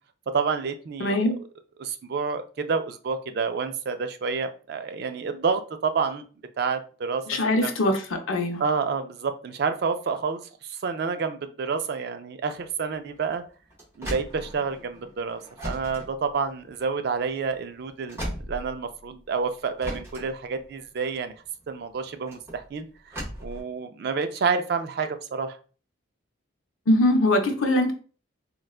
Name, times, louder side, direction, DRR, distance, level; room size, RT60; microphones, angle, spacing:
voice 1, 0.3-1.4 1.8-6.2 6.6-7.7 8.6-13.4 14.0-18.2 18.5-21.3 21.7-25.6, right 5 dB, 50° right, 9 dB, 0.3 m, -29 dB
voice 2, 1.0-1.4 7.3-8.6 26.9-27.9, left 1 dB, 85° left, 5 dB, 0.6 m, -22 dB
sound 1, 12.6-19.3 19.8-23.6, equal, 15° right, 0.7 m, -38 dB
3.8 x 2.2 x 2.3 m, 0.39 s
head